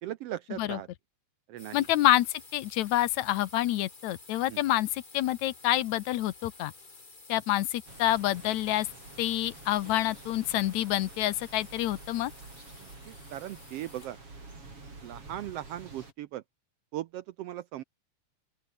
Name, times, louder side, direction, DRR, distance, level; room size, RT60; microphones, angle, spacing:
voice 1, 0.0-0.9 1.5-1.9 4.5-4.6 12.8-14.2 15.0-16.4 16.9-17.8, right 13 dB, 75° right, 1.5 m, -38 dB
sound 1, 1.6-14.3, left 3 dB, 20° left, 1.9 m, -52 dB
voice 2, 1.7-6.7 7.3-8.9 9.2-12.3, left 14 dB, 80° left, 2.2 m, -27 dB
sound 2, 7.9-16.1, right 3 dB, 50° right, 7.3 m, -49 dB
open air
omnidirectional pair, 3.3 m